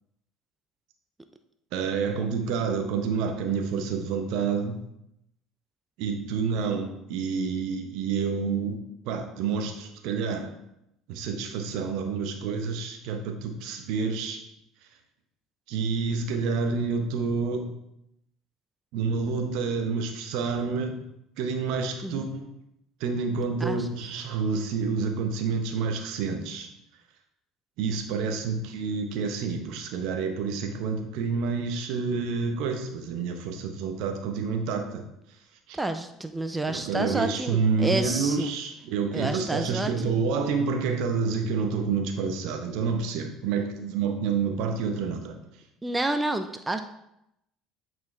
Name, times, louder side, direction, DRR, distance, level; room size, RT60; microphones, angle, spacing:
voice 1, 1.7-4.8 6.0-10.5 11.1-14.4 15.7-17.7 18.9-21.0 21.4-22.5 23.0-26.7 27.8-35.0 35.7-35.8 36.7-45.4, right 5 dB, 65° right, 5 dB, 0.9 m, -28 dB
voice 2, 35.7-38.5 39.1-40.2 45.8-46.8, right 2 dB, 15° right, 8 dB, 0.5 m, -29 dB
8.0 x 4.6 x 3.2 m, 0.81 s
hypercardioid pair, 65°, 0 cm